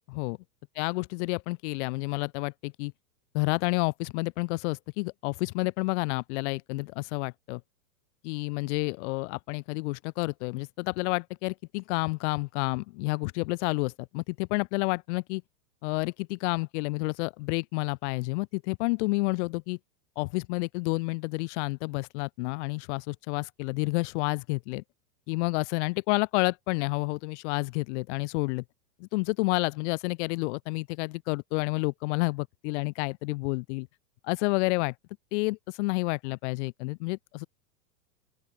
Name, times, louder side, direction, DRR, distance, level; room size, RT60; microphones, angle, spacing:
voice 1, 0.8-2.9 3.3-7.6 8.2-15.4 15.8-19.8 20.2-24.8 25.3-28.6 29.0-33.9 34.2-34.9 35.3-37.5, left 26 dB, 45° left, 2.3 m, -30 dB
open air
supercardioid pair, 145°, 49 cm